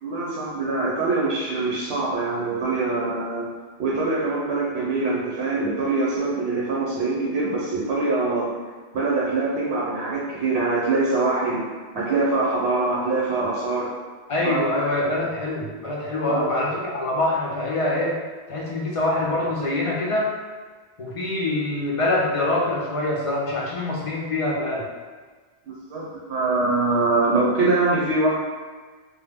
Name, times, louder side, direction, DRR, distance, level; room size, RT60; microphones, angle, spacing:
voice 1, 0.0-3.4 3.8-8.5 8.9-11.6 11.9-13.9 14.4-14.6 15.0-15.1 16.3-16.5 25.7-28.3, right 3 dB, 75° right, -5 dB, 0.8 m, -23 dB
voice 2, 14.3-18.2 18.5-20.3 21.0-24.9, left 2 dB, 50° left, -3 dB, 0.4 m, -24 dB
2.3 x 2.0 x 3.4 m, 1.4 s
omnidirectional pair, 1.1 m